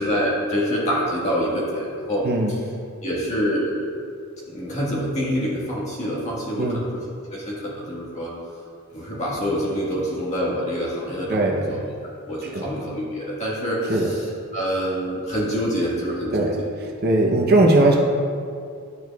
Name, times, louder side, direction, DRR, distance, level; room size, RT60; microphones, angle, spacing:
voice 1, 0.0-2.6 3.0-3.9 4.5-6.9 7.3-8.3 8.9-14.2 14.5-16.7, equal, 30° left, -6 dB, 1.6 m, -26 dB
voice 2, 17.0-18.0, right 2 dB, 45° right, 0 dB, 0.7 m, -18 dB
11.0 x 4.7 x 2.3 m, 2.3 s
head